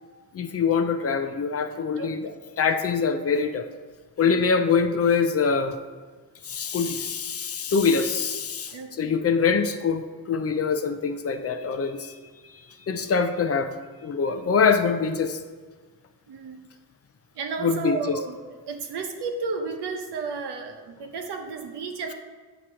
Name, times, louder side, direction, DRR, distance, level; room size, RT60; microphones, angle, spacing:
voice 1, 0.3-3.7 4.2-5.8 6.4-12.2 12.9-13.7 14.0-15.4 17.6-18.2, left 5 dB, 40° left, 9 dB, 0.4 m, -24 dB
voice 2, 2.0-2.3 4.2-4.5 7.8-7.9 8.7-9.2 14.3-14.4 16.3-16.6 17.3-18.4 18.7-22.1, right 4 dB, 85° right, 4 dB, 0.9 m, -33 dB
8.2 x 3.0 x 6.2 m, 1.4 s
wide cardioid pair, 145°, 39 cm